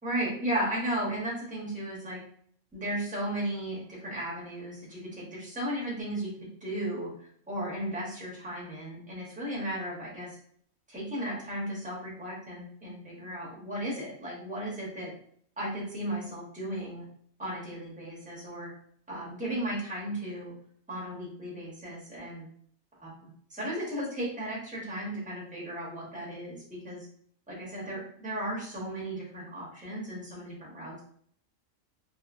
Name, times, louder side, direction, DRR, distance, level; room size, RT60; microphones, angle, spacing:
voice 1, 0.0-2.2 2.7-6.3 6.6-7.1 7.5-10.4 10.9-15.1 15.6-17.1 17.4-18.7 19.1-20.5 20.9-22.5 23.0-27.1 27.5-31.0, right 1 dB, 5° right, -5 dB, 0.8 m, -35 dB
2.9 x 2.4 x 2.4 m, 0.63 s
omnidirectional pair, 1.4 m